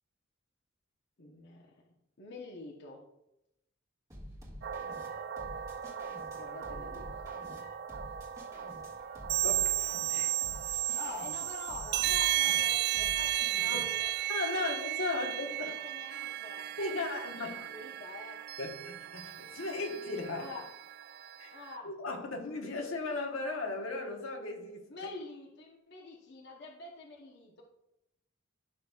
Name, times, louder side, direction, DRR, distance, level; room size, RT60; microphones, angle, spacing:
voice 1, 1.2-1.8 2.2-3.0 6.3-7.2 7.5-7.6 10.9-14.1 14.5-14.8 15.1-15.3 15.6-18.4 20.4-20.7 21.5-21.9 24.9-27.6, left 2 dB, 55° left, -2 dB, 1.0 m, -46 dB
sound 1, 4.1-14.2, equal, 20° right, 1.8 m, -49 dB
sound 2, 4.6-21.7, right 13 dB, 50° right, 0.4 m, -34 dB
voice 2, 9.4-9.8 10.1-10.3 13.5-13.8 14.3-15.7 16.8-17.7 18.6-20.5 21.4-21.5 21.8-24.9, left 2 dB, 80° left, 1 dB, 1.3 m, -36 dB
11.5 x 6.1 x 2.4 m, 0.87 s
head